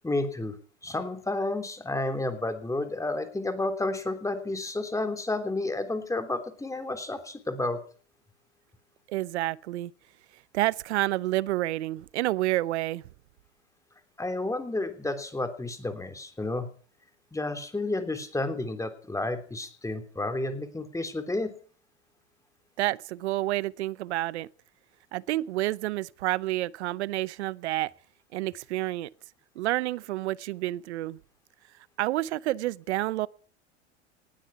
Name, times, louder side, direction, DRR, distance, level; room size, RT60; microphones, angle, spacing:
voice 1, 0.0-0.5 0.8-7.8 14.2-16.7 17.3-21.5, left 2 dB, 10° left, 3.2 m, -31 dB
voice 2, 9.1-9.9 10.5-13.0 22.8-24.5 25.1-27.9 28.3-29.1 29.6-31.2 32.0-33.3, right 16 dB, 75° right, 0.8 m, -29 dB
19.5 x 12.5 x 5.8 m
hypercardioid pair, 90°, 34 cm